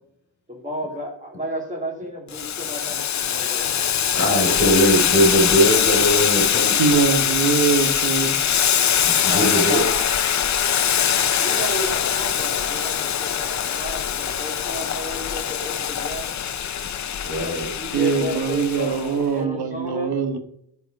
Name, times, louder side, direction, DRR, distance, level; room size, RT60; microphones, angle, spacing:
voice 1, 0.5-3.9 9.2-10.1 11.4-16.4 17.4-20.1, equal, 20° right, 0 dB, 2.6 m, -33 dB
Boiling, 2.3-19.1, left 9 dB, 45° left, 0.6 m, -22 dB
voice 2, 4.1-6.7 9.0-9.8 17.2-17.7, equal, 25° left, 2 dB, 3.2 m, -20 dB
voice 3, 6.8-8.3 17.9-20.4, right 5 dB, 70° right, 8 dB, 1.3 m, -22 dB
14.0 x 4.9 x 5.3 m, 0.73 s
wide cardioid pair, 175°, 40 cm